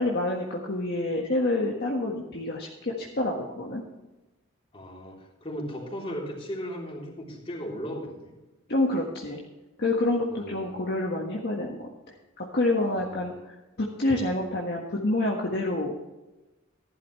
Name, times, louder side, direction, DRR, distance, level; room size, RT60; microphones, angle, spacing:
voice 1, 0.0-3.8 8.7-9.4 9.8-11.9 12.4-13.3 13.8-16.1, left 2 dB, 50° left, -2 dB, 1.6 m, -27 dB
voice 2, 4.7-8.3 10.3-10.9 12.9-13.4 14.4-14.6, equal, 25° left, -2 dB, 3.5 m, -37 dB
14.5 x 11.5 x 3.2 m, 1.1 s
head